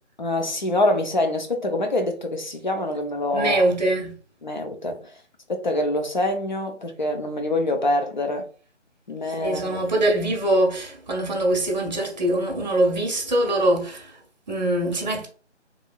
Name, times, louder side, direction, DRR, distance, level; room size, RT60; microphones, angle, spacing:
voice 1, 0.2-3.7 4.4-5.1 5.5-8.4 9.1-9.8, left 1 dB, 40° left, 0.5 m, -25 dB
voice 2, 3.3-4.2 9.4-14.2 14.5-15.3, right 1 dB, 35° right, 0.8 m, -23 dB
2.9 x 2.5 x 2.3 m
figure-of-eight pair, 155°, 36 cm